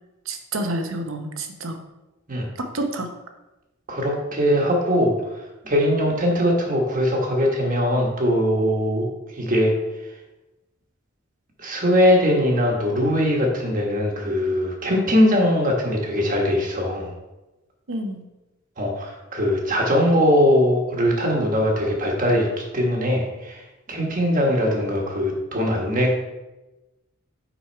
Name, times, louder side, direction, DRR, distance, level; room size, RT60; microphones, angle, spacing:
voice 1, 0.3-1.8 2.6-3.1 17.9-18.2, right 1 dB, 70° right, 5 dB, 0.9 m, -28 dB
voice 2, 3.9-5.1 5.6-9.1 9.3-9.7 11.6-17.1 18.8-22.5 22.7-26.1, equal, 40° right, 0 dB, 1.3 m, -21 dB
6.0 x 5.3 x 4.5 m, 1.0 s
head